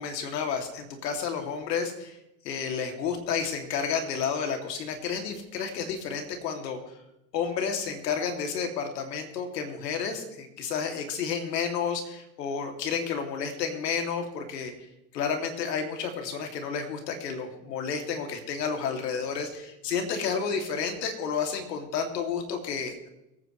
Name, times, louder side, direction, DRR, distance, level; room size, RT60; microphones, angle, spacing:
voice 1, 0.0-2.2 2.4-6.8 7.3-14.7 15.1-23.1, left 6 dB, 80° left, 4 dB, 2.7 m, -31 dB
23.5 x 9.4 x 3.2 m, 0.90 s
hypercardioid pair, 105°, 49 cm